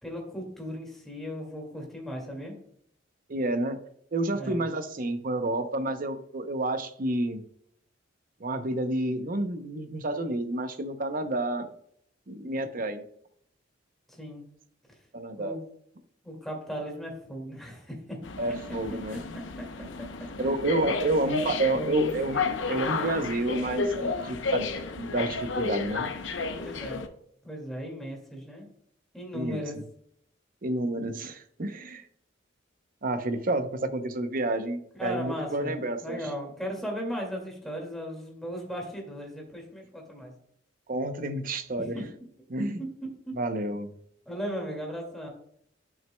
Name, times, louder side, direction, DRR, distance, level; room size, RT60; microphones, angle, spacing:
voice 1, 0.0-2.6 4.3-4.6 14.1-14.4 15.4-15.6 16.2-18.2 19.3-19.6 20.4-20.7 21.4-22.1 26.6-27.0 27.4-28.7 29.1-29.8 35.0-40.3 41.8-42.1 42.8-42.9 44.3-45.3, equal, ahead, 0 dB, 2.1 m, -37 dB
voice 2, 3.3-3.8 4.1-7.4 8.4-11.7 12.3-13.0 15.1-15.6 18.4-19.2 20.4-24.7 25.0-26.1 29.3-29.6 30.6-32.1 33.0-36.2 40.9-42.0 42.5-42.8 43.3-43.9, right 2 dB, 50° right, 9 dB, 0.7 m, -29 dB
sound 1, 18.2-27.1, left 4 dB, 80° left, 0.7 m, -32 dB
10.5 x 5.9 x 2.2 m, 0.68 s
head